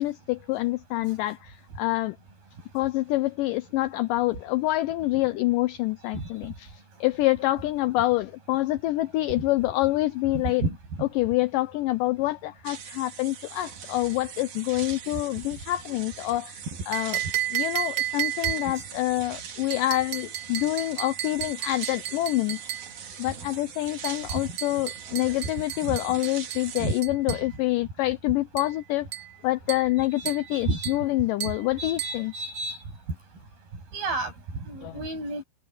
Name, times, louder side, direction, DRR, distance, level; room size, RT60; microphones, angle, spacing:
voice 1, 0.0-2.2 2.7-6.7 7.0-10.6 11.0-17.2 17.5-22.6 23.2-29.1 29.4-32.3 34.8-35.0, left 17 dB, 85° left, 1.9 m, -26 dB
voice 2, 6.1-6.5 9.3-9.4 10.3-10.8 15.1-15.2 17.2-17.3 18.6-18.8 23.1-23.6 24.3-25.4 25.8-26.2 26.8-26.9 27.3-27.4 30.2-30.9 31.2-32.8 33.9-35.4, right 3 dB, 70° right, 10.0 m, -33 dB
sound 1, 12.6-27.0, right 7 dB, 55° right, 3.4 m, -42 dB
sound 2, 16.9-18.9 19.7-22.9 24.0-27.5 28.6-28.8 29.1-29.4 29.7-30.0 30.3-30.5 30.8-31.1 31.4-31.7 32.0-32.2, right 13 dB, 90° right, 1.4 m, -33 dB
omnidirectional pair, 4.4 m